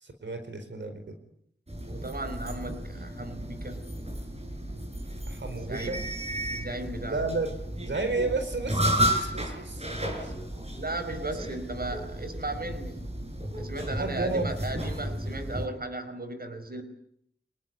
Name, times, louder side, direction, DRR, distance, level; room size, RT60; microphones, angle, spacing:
voice 1, 0.0-1.1 5.3-6.0 7.1-7.5 7.8-9.9 10.2-10.3 13.8-14.5, right 3 dB, 90° right, 7 dB, 4.6 m, -32 dB
sound 1, 1.7-15.7, right 1 dB, 35° right, 7.4 m, -33 dB
voice 2, 1.9-3.9 5.5-6.1 6.5-7.3 10.8-13.1 13.6-16.8, right 2 dB, 55° right, 10 dB, 4.8 m, -36 dB
27.0 x 19.5 x 9.8 m, 0.71 s
wide cardioid pair, 50°, 18 cm